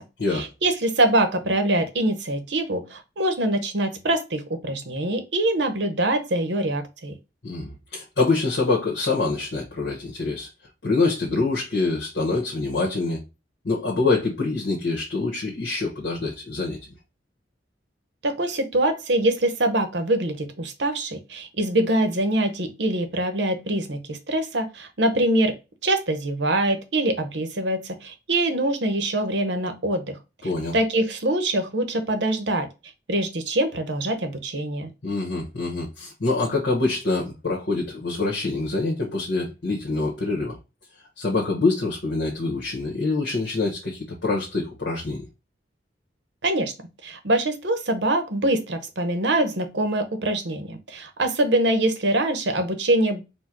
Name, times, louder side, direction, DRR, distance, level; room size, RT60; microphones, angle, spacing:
voice 1, 0.3-7.1 18.2-25.5 25.8-30.2 30.7-32.7 33.1-34.9 46.4-46.7 47.0-53.2, right 1 dB, 75° right, 0.9 m, -24 dB
voice 2, 7.4-10.5 10.8-13.2 13.6-16.8 30.4-30.7 35.0-40.6 41.2-45.2, left 3 dB, 65° left, 1.3 m, -25 dB
4.4 x 2.2 x 4.5 m
head